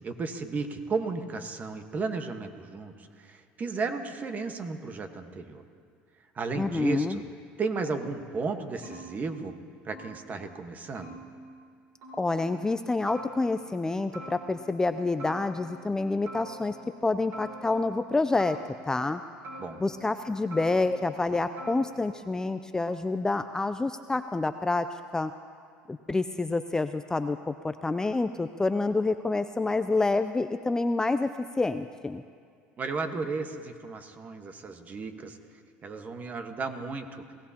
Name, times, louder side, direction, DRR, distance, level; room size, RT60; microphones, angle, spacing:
voice 1, 0.0-5.6 6.3-7.2 7.6-9.5 9.8-11.2 19.6-19.8 32.8-35.4 35.8-37.2, right 4 dB, 35° right, 7 dB, 1.3 m, -34 dB
voice 2, 6.6-7.2 12.2-16.8 17.0-18.6 18.8-19.2 19.8-24.9 25.1-25.3 25.9-31.3 31.6-32.2, left 3 dB, 15° left, 10 dB, 0.4 m, -28 dB
sound 1, 8.8-9.6 9.9-10.5 10.9-11.8 12.0-12.6 13.1-13.8 14.1-14.9 15.2-16.0 16.3-17.0 17.3-18.1 18.4-19.1 19.4-20.2 20.5-21.2 21.6-22.3, equal, 65° right, 4.5 m, -45 dB
26.5 x 17.5 x 2.9 m, 2.2 s
supercardioid pair, 95°, 5 cm